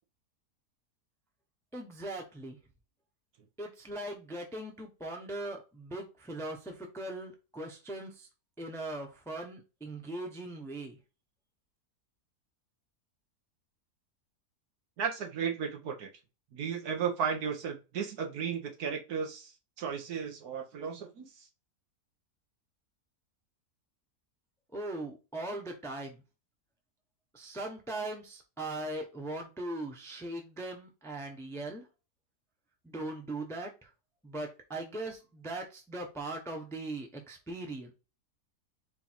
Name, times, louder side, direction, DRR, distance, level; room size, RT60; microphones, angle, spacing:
voice 1, 1.7-2.6 3.6-8.3 8.6-11.0 24.7-26.2 27.3-31.8 32.8-33.7 34.2-37.9, right 2 dB, 5° left, 2 dB, 0.6 m, -39 dB
voice 2, 15.0-16.1 16.5-19.5 19.8-21.3, right 7 dB, 80° right, 2 dB, 1.5 m, -34 dB
4.5 x 2.6 x 4.4 m, 0.30 s
omnidirectional pair, 1.6 m